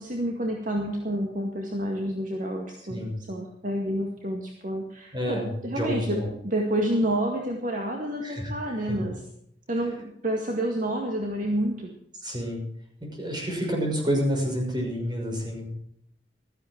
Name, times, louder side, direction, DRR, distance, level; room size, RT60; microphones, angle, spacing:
voice 1, 0.0-9.2 9.7-12.0, right 1 dB, 50° right, 1 dB, 2.1 m, -29 dB
voice 2, 5.1-5.5 5.8-6.3 8.2-8.5 8.9-9.0 12.2-12.6 13.0-15.7, equal, 25° right, 0 dB, 6.2 m, -28 dB
16.0 x 14.0 x 4.6 m, 0.73 s
head